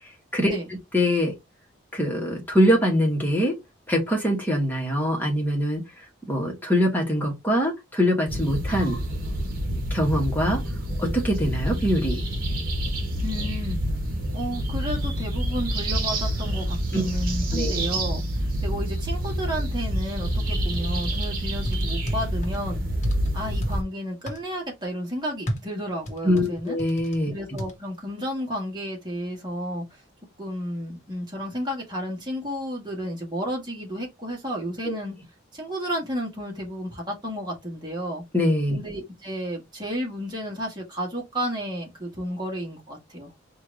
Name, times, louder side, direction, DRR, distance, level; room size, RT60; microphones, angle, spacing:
voice 1, 0.9-1.3 1.9-3.6 3.9-5.8 6.2-9.0 9.9-10.6 11.0-12.2 16.9-17.0 17.5-17.8 26.2-27.3 34.8-35.0 38.3-38.8, equal, 10° left, 1.5 m, -23 dB
sound 1, 8.3-23.8, right 1 dB, 45° right, 1.3 m, -27 dB
voice 2, 13.2-13.8 14.3-18.2 18.6-22.8 23.3-26.8 27.3-29.8 30.4-35.2 35.5-38.2 38.7-43.3, equal, 20° right, 1.7 m, -32 dB
sound 2, 20.7-21.3 21.7-22.6 23.0-23.7 24.3-24.4 25.5-27.2 27.6-27.7, equal, 35° left, 1.0 m, -32 dB
4.4 x 2.7 x 3.2 m
head